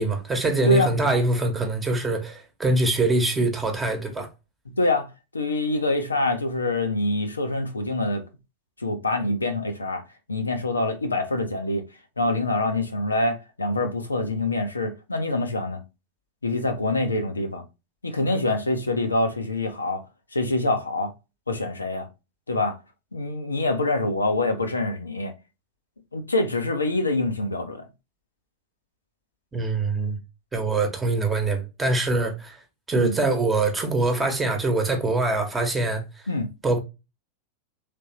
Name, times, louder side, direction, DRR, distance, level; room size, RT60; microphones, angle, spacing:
voice 1, 0.0-4.3 29.5-30.2 30.5-32.6 32.9-36.0 36.6-36.8, right 2 dB, 15° right, 1.0 m, -24 dB
voice 2, 4.8-8.2 8.8-10.0 10.3-11.8 12.2-15.8 16.4-17.6 18.0-20.0 20.3-21.1 21.5-22.1 22.5-22.8 23.1-25.3 26.1-27.9 33.0-33.1 36.3-36.5, left 2 dB, 80° left, 0.7 m, -25 dB
3.4 x 3.3 x 2.8 m
figure-of-eight pair, 90°, 0 cm